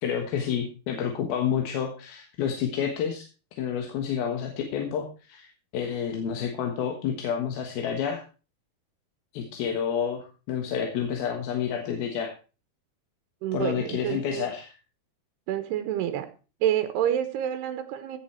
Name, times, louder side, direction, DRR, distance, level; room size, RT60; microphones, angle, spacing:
voice 1, 0.0-3.3 3.6-8.2 9.3-12.3 13.5-14.7, left 8 dB, 70° left, 3 dB, 3.2 m, -29 dB
voice 2, 13.4-14.5 15.5-16.3 16.6-18.2, right 11 dB, 80° right, 10 dB, 3.0 m, -28 dB
16.0 x 8.0 x 4.4 m, 0.34 s
omnidirectional pair, 4.8 m